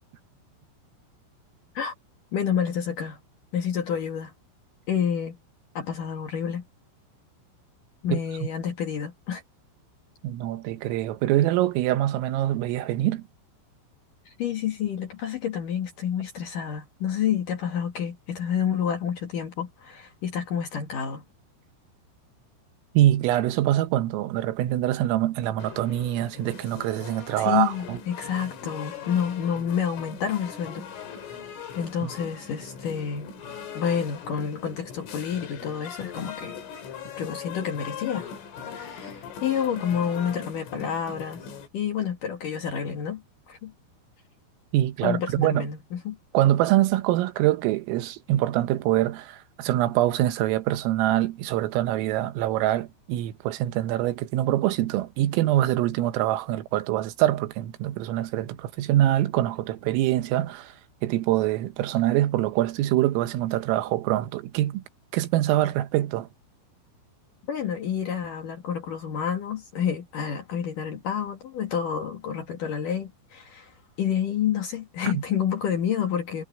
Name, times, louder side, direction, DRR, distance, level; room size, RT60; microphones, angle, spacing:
voice 1, 2.3-3.2 3.5-4.3 4.9-5.4 5.7-6.6 8.0-9.4 14.3-21.2 27.4-30.9 31.8-33.3 33.7-36.6 37.2-38.3 38.7-41.4 41.7-43.7 45.0-46.2 67.5-73.7 74.0-76.4, left 8 dB, 55° left, 2.6 m, -29 dB
voice 2, 10.2-13.2 23.0-28.0 32.0-32.1 44.7-45.7 46.3-60.7 61.0-64.8 65.1-66.3 75.1-75.2, right 14 dB, 85° right, 3.8 m, -24 dB
sound 1, 25.6-41.7, left 7 dB, 75° left, 5.8 m, -40 dB
omnidirectional pair, 5.8 m